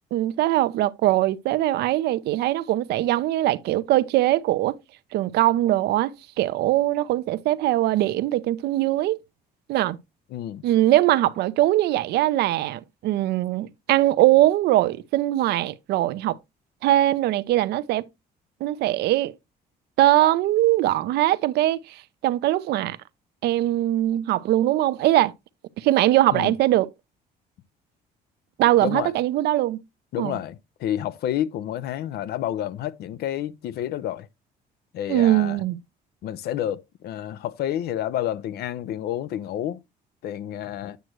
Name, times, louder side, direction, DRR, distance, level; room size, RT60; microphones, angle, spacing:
voice 1, 0.1-4.8 5.1-6.1 6.4-9.2 9.7-10.0 10.6-16.4 16.8-18.0 18.6-19.3 20.0-23.0 23.4-25.3 25.8-26.9 28.6-29.8 30.2-30.4 35.1-35.8, right 15 dB, 75° right, 0.7 m, -21 dB
voice 2, 10.3-10.6 26.3-26.5 28.8-29.1 30.1-34.3 34.9-35.6 36.2-39.8 40.2-41.0, left 11 dB, 70° left, 0.7 m, -29 dB
9.2 x 6.5 x 3.0 m
cardioid pair, 110°, 17 cm